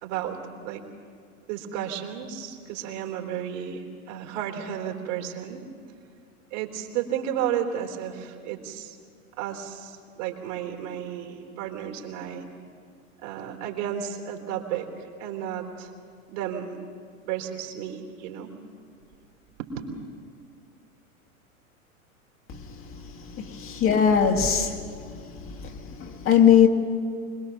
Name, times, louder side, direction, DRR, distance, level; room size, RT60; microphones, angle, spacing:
voice 1, 0.0-0.8 1.5-5.6 6.5-9.0 9.4-12.4 13.2-15.9 16.3-16.7 17.2-18.5 19.6-19.7, right 9 dB, 55° right, 3 dB, 3.7 m, -33 dB
voice 2, 23.5-24.8 26.0-26.7, left 8 dB, 30° left, 3 dB, 1.9 m, -19 dB
26.0 x 20.5 x 7.1 m, 2.2 s
hypercardioid pair, 95°, 42 cm